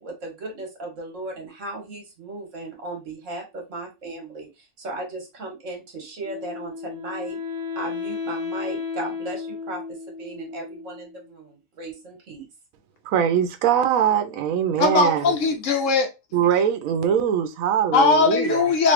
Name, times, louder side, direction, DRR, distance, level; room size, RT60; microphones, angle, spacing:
voice 1, 0.0-7.4 7.7-12.5, right 2 dB, 65° right, 1.6 m, -36 dB
Wind instrument woodwind instrument, 6.2-11.3, left 5 dB, 20° right, 0.8 m, -33 dB
voice 2, 13.1-15.3 16.3-18.7, right 9 dB, 85° right, 1.0 m, -22 dB
voice 3, 14.8-16.1 17.9-18.9, left 4 dB, 70° left, 1.0 m, -19 dB
3.1 x 2.5 x 3.0 m
omnidirectional pair, 1.4 m